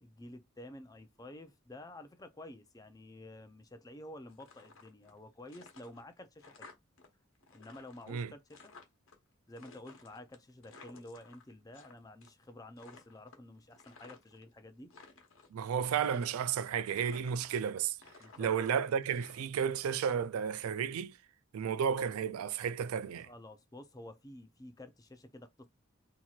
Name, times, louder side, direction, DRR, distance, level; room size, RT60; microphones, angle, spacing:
voice 1, 0.0-6.7 7.5-8.7 9.5-14.9 18.2-18.8 23.2-25.7, left 1 dB, 15° left, 0.4 m, -51 dB
sound 1, 4.3-5.2 5.5-7.1 7.3-9.2 9.6-11.9 12.2-12.5 12.8-14.4 14.8-15.5 16.0-16.6 17.0-17.7 18.0-19.8, left 4 dB, 70° left, 1.0 m, -56 dB
voice 2, 15.5-18.0 18.4-21.2 21.5-23.3, right 7 dB, 85° right, 0.3 m, -32 dB
4.3 x 2.8 x 2.4 m
head